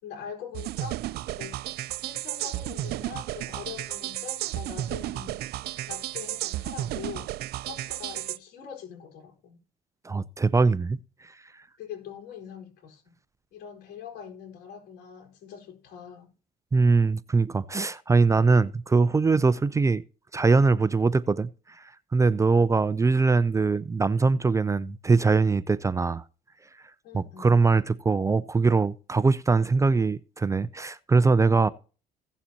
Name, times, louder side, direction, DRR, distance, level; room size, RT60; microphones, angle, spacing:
voice 1, 0.0-1.0 1.3-1.6 2.0-5.4 5.9-9.6 11.8-13.1 13.5-16.3 27.0-27.6, left 8 dB, 80° left, 4.2 m, -43 dB
sound 1, 0.5-8.4, right 15 dB, 70° right, 0.5 m, -33 dB
voice 2, 10.0-11.0 16.7-20.0 20.3-21.5 22.1-26.2 27.1-31.7, right 4 dB, 20° right, 0.4 m, -22 dB
16.5 x 7.1 x 2.9 m
cardioid pair, 110°, 17 cm